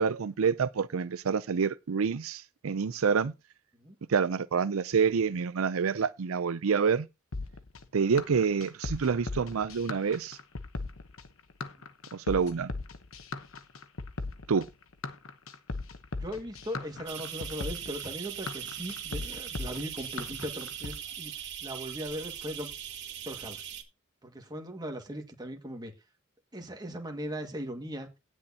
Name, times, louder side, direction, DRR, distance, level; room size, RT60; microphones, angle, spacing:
voice 1, 0.0-3.3 4.1-7.1 7.9-10.4 12.1-12.7 14.5-14.7, right 6 dB, 90° right, 0.5 m, -27 dB
sound 1, 7.3-21.0, left 3 dB, 75° left, 1.1 m, -38 dB
voice 2, 16.1-21.3 21.6-22.7 23.3-23.7 24.2-25.9 26.5-28.1, equal, 20° right, 1.9 m, -39 dB
sound 2, 17.1-23.8, right 9 dB, 60° right, 2.2 m, -40 dB
17.5 x 6.3 x 2.8 m
head